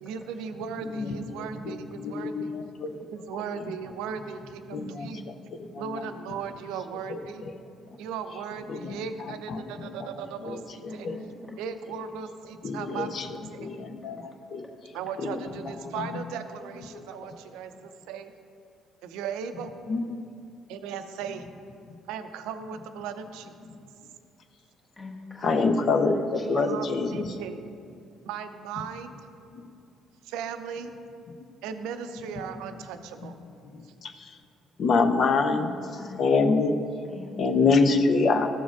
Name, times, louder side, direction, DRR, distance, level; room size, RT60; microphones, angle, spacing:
voice 1, 0.0-2.5 3.1-5.2 5.8-7.4 8.0-11.1 11.6-13.1 13.5-13.7 14.9-18.3 19.0-19.7 20.7-21.5 22.1-23.5 26.6-27.6 28.2-29.1 30.2-30.9 31.6-33.4, right 7 dB, 70° right, 9 dB, 0.5 m, -37 dB
voice 2, 0.8-3.2 3.6-3.7 4.7-6.0 7.1-7.5 8.7-11.2 12.6-14.9 15.2-16.2 16.9-17.1 19.9-20.2 21.9-22.0 23.6-23.8 25.4-27.4 29.5-29.6 31.3-31.4 32.8-32.9 33.2-33.3 33.6-34.4 34.8-36.8 37.4-38.5, left 4 dB, 55° left, 6 dB, 0.6 m, -27 dB
voice 3, 10.9-11.6 12.9-13.0 13.4-13.7 14.0-14.1 25.0-26.6 35.5-36.3 37.1-37.6, left 2 dB, 25° left, -1 dB, 1.5 m, -41 dB
13.5 x 7.1 x 2.5 m, 2.4 s
hypercardioid pair, 50°, 0 cm